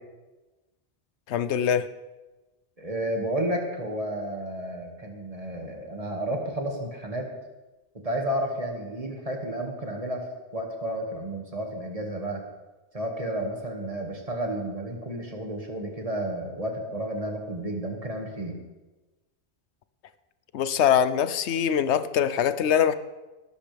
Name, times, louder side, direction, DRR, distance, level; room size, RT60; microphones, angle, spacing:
voice 1, 1.3-1.9 20.5-22.9, left 9 dB, 75° left, 13 dB, 1.0 m, -23 dB
voice 2, 2.8-7.3 8.0-10.2 10.5-12.4 12.9-18.6, right 1 dB, 30° right, 1 dB, 2.1 m, -31 dB
18.5 x 13.0 x 3.5 m, 1.1 s
omnidirectional pair, 1.2 m